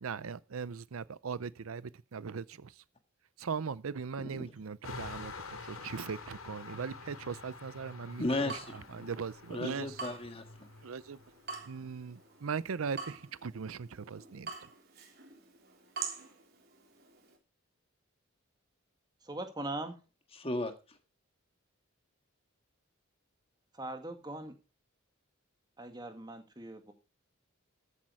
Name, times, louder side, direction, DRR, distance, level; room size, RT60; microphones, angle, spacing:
voice 1, 0.0-2.8 3.4-10.0 10.8-11.2 11.7-14.7, right 5 dB, 80° right, 0.5 m, -39 dB
sound 1, 4.8-12.9, left 4 dB, 85° left, 2.4 m, -48 dB
Water tap faucet / Drip, 8.1-17.4, right 5 dB, 45° right, 3.4 m, -47 dB
voice 2, 8.2-9.1 9.5-10.4 20.3-21.0, left 2 dB, 25° left, 1.7 m, -35 dB
voice 3, 19.2-20.0 23.7-24.5 25.8-26.9, right 2 dB, 20° right, 1.8 m, -40 dB
14.0 x 8.5 x 4.7 m
head